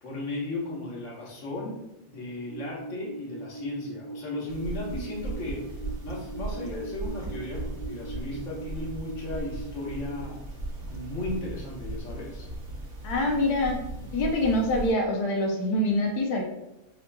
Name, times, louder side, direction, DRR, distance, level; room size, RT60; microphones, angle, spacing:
voice 1, 0.0-5.6 6.0-10.4 10.9-12.5, left 2 dB, 55° left, -4 dB, 1.4 m, -35 dB
sound 1, 2.5-10.2, right 3 dB, 80° right, 0.5 m, -41 dB
sound 2, 4.5-14.9, right 2 dB, 50° right, 1.3 m, -37 dB
voice 2, 13.0-13.8 14.1-16.4, left 1 dB, 85° left, 1 dB, 1.2 m, -25 dB
6.2 x 2.9 x 2.2 m, 0.91 s
omnidirectional pair, 1.6 m